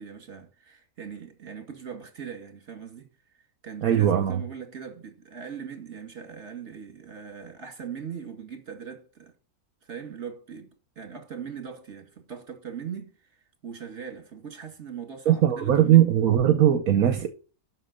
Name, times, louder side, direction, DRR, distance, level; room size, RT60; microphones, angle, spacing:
voice 1, 0.0-3.1 3.4-9.3 9.8-16.1, right 7 dB, 50° right, 2.3 m, -40 dB
voice 2, 3.8-4.4 15.3-17.3, right 11 dB, 75° right, 1.3 m, -20 dB
7.7 x 6.4 x 6.5 m
omnidirectional pair, 1.5 m